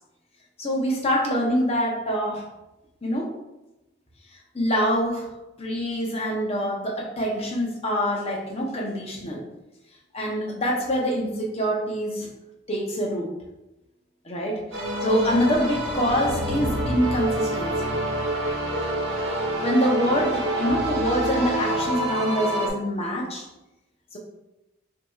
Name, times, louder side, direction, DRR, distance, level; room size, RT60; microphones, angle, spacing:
voice 1, 0.6-2.4 3.0-3.3 4.5-5.3 5.6-9.4 10.1-12.3 12.7-13.3 14.2-14.6 15.0-17.9 19.6-23.5 24.1-24.2, equal, 30° left, -1 dB, 0.8 m, -25 dB
sound 1, 14.7-22.7, right 1 dB, 75° right, 1.0 m, -27 dB
5.7 x 2.9 x 2.4 m, 0.96 s
head